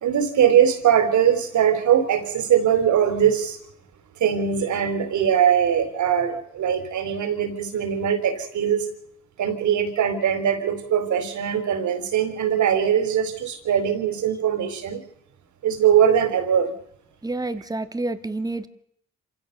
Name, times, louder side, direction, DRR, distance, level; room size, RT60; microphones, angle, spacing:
voice 1, 0.0-3.6 4.2-8.9 9.4-15.0 15.6-16.7, right 9 dB, 70° right, 10 dB, 4.0 m, -21 dB
voice 2, 17.2-18.7, right 2 dB, 10° right, 10 dB, 1.8 m, -28 dB
27.0 x 16.5 x 6.7 m, 0.72 s
cardioid pair, 90°, 30 cm